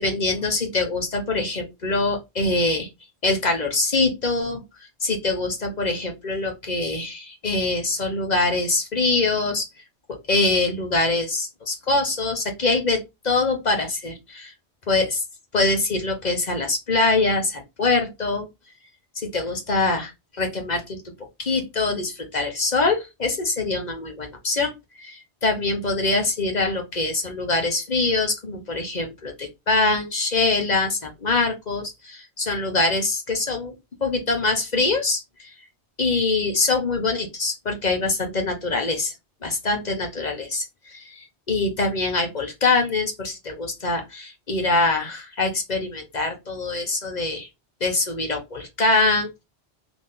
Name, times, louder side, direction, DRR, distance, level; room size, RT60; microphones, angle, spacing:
voice 1, 0.0-2.9 3.2-9.7 10.3-13.0 13.2-14.5 14.9-15.2 15.5-18.5 19.2-21.0 21.4-33.7 34.0-35.5 36.0-39.1 39.4-47.5 47.8-49.4, left 3 dB, 40° left, 1.2 m, -24 dB
4.0 x 3.0 x 3.8 m
omnidirectional pair, 1.1 m